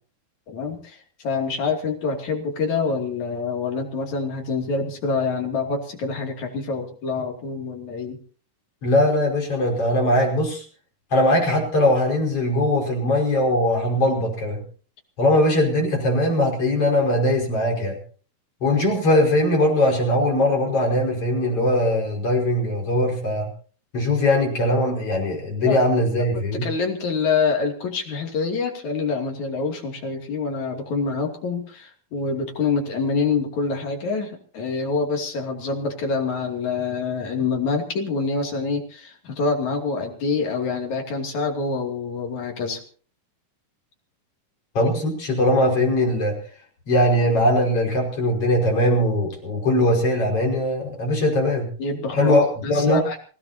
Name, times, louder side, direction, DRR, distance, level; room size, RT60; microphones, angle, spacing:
voice 1, 0.5-8.2 25.6-25.9 26.3-42.8 51.8-53.2, left 4 dB, 60° left, 2 dB, 4.0 m, -26 dB
voice 2, 8.8-10.6 11.1-14.6 15.2-18.0 18.6-23.5 23.9-26.7 44.7-46.4 46.9-51.7 52.1-53.0, left 1 dB, 40° left, 0 dB, 6.3 m, -20 dB
27.0 x 17.0 x 2.9 m, 0.41 s
omnidirectional pair, 3.9 m